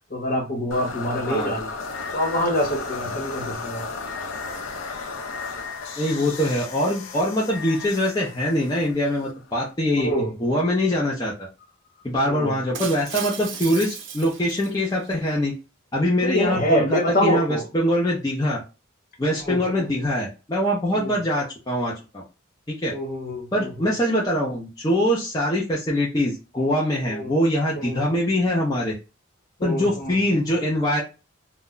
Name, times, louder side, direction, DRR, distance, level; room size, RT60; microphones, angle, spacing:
voice 1, 0.1-1.7 2.1-3.8 10.0-10.3 12.3-12.5 16.2-17.6 19.4-19.9 20.9-21.2 22.9-23.9 27.1-27.3 27.8-28.0 29.6-30.5, equal, 45° left, 1.0 m, -26 dB
sound 1, 0.7-9.7, left 4 dB, 85° left, 0.5 m, -34 dB
voice 2, 6.0-10.1 10.4-11.5 12.0-15.5 15.9-18.6 19.2-22.2 22.7-22.9 23.5-28.9 29.6-31.0, equal, 20° left, 0.5 m, -23 dB
Shatter, 12.7-15.1, right 7 dB, 60° right, 0.5 m, -35 dB
2.2 x 2.1 x 3.6 m
head